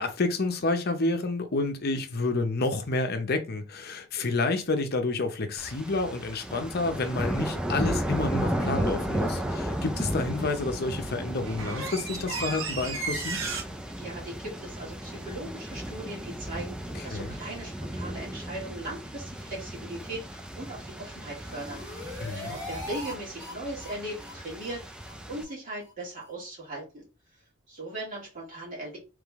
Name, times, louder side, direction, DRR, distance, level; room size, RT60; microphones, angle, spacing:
voice 1, 0.0-13.4 16.9-17.3 22.2-22.6, left 3 dB, 55° left, 0.7 m, -29 dB
sound 1, 5.6-25.4, equal, 5° right, 0.5 m, -34 dB
sound 2, 7.0-7.2 10.8-10.9 11.2-13.6, right 4 dB, 80° right, 1.2 m, -34 dB
voice 2, 14.0-27.0 27.7-29.0, right 1 dB, 45° right, 2.1 m, -39 dB
sound 3, 21.1-23.1 23.4-23.5 23.8-23.9 24.2-24.3 24.6-24.7 25.0-25.1 25.4-25.5 25.8-25.9 26.2-26.3, left 2 dB, 20° right, 1.5 m, -41 dB
3.6 x 3.3 x 3.5 m
head